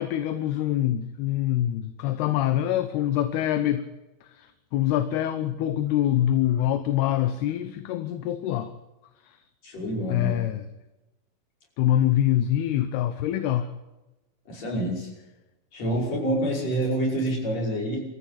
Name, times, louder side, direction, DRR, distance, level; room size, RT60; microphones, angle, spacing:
voice 1, 0.0-3.8 4.3-4.5 4.7-8.7 9.3-9.4 10.1-10.6 11.8-13.7, left 12 dB, 75° left, 10 dB, 2.8 m, -25 dB
voice 2, 9.6-10.3 14.5-15.1 15.7-18.0, right 1 dB, 35° left, -1 dB, 6.7 m, -27 dB
24.0 x 14.5 x 8.6 m, 1.0 s
omnidirectional pair, 5.1 m